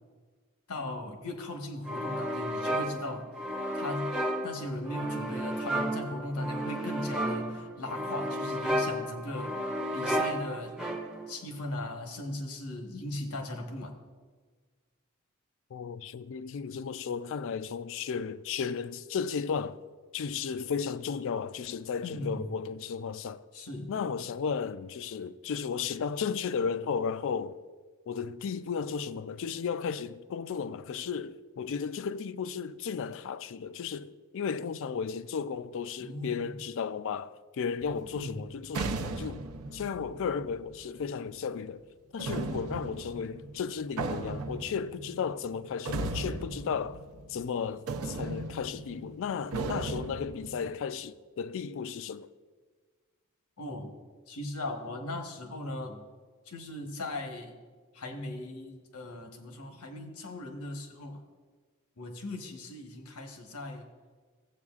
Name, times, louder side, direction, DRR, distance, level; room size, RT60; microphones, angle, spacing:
voice 1, 0.7-3.3 3.7-9.6 9.9-10.8 11.3-14.0 22.0-22.5 23.5-23.9 36.0-36.6 38.1-38.4 53.6-53.9 54.3-56.0 56.5-57.5 57.9-61.2 62.0-63.9, left 1 dB, 80° left, 1.2 m, -38 dB
sound 1, 1.9-11.4, equal, 5° right, 0.6 m, -33 dB
voice 2, 15.7-19.8 20.1-23.4 23.9-27.6 28.1-39.4 39.7-41.8 42.1-47.0 47.3-52.3, left 6 dB, 60° left, 0.4 m, -34 dB
sound 2, 37.8-41.2 42.2-47.6 47.9-50.7, right 3 dB, 75° right, 0.6 m, -37 dB
15.5 x 7.9 x 2.4 m
head